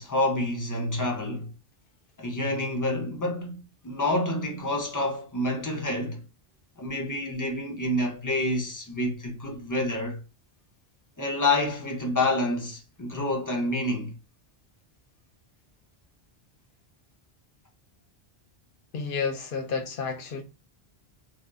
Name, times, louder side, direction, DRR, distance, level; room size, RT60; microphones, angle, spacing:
voice 1, 0.0-1.5 2.2-6.2 6.8-10.2 11.2-14.1, left 1 dB, 25° left, 0.4 m, -28 dB
voice 2, 18.9-20.4, left 5 dB, 65° left, 0.7 m, -30 dB
2.7 x 2.2 x 2.3 m
omnidirectional pair, 1.1 m